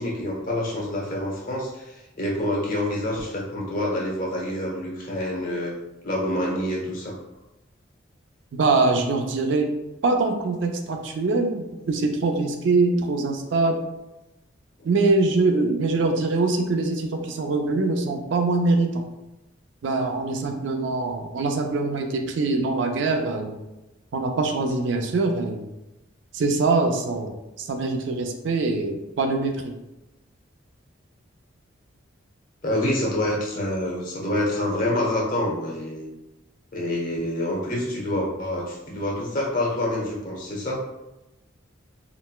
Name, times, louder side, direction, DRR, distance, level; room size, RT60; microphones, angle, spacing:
voice 1, 0.0-5.7 6.0-7.2 32.6-36.1 36.7-40.8, left 1 dB, 40° left, -3 dB, 0.7 m, -27 dB
voice 2, 8.5-9.7 10.0-13.8 14.8-18.9 19.8-23.5 24.1-25.6 26.3-27.3 27.6-29.5, right 3 dB, 65° right, 4 dB, 0.4 m, -23 dB
3.9 x 2.1 x 2.2 m, 0.96 s
head